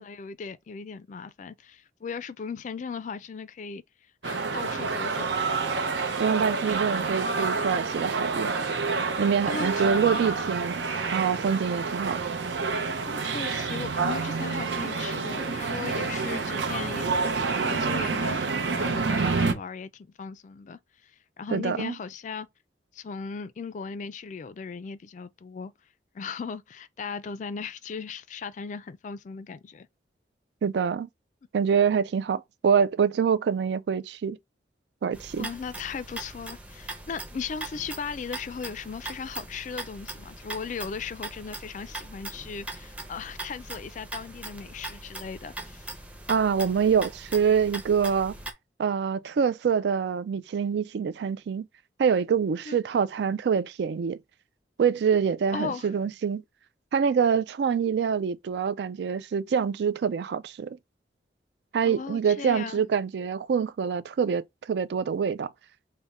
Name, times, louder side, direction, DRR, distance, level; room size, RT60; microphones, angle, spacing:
voice 1, 0.0-3.8 4.2-5.5 9.5-9.9 13.1-17.1 17.6-22.5 22.9-25.7 26.1-29.9 35.4-45.9 52.7-52.8 55.5-55.9 61.9-62.8, left 5 dB, 45° left, 0.3 m, -37 dB
sound 1, 4.2-19.5, right 4 dB, 85° right, 0.7 m, -28 dB
voice 2, 6.2-8.5 9.2-10.8 11.1-12.2 21.5-21.9 30.6-31.1 31.5-34.4 35.0-35.5 46.3-48.3 48.8-51.7 52.0-54.2 54.8-56.4 56.9-60.8 61.7-65.5, right 6 dB, 70° right, 0.3 m, -25 dB
sound 2, 35.1-48.5, right 2 dB, 10° right, 0.6 m, -41 dB
3.5 x 2.1 x 4.1 m
head